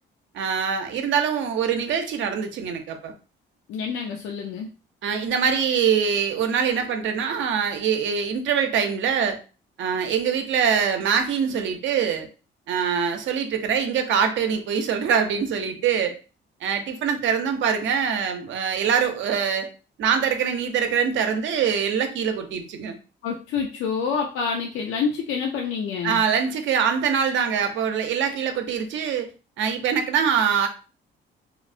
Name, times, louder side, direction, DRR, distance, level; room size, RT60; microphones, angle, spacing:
voice 1, 0.3-3.1 5.0-9.4 9.8-12.3 12.7-16.2 16.6-19.7 20.0-23.0 26.0-29.3 29.6-30.7, right 7 dB, 70° right, 6 dB, 0.6 m, -24 dB
voice 2, 3.7-4.7 23.2-26.2, left 6 dB, 85° left, 2 dB, 0.5 m, -27 dB
3.0 x 2.0 x 2.5 m, 0.33 s
cardioid pair, 90°, 20 cm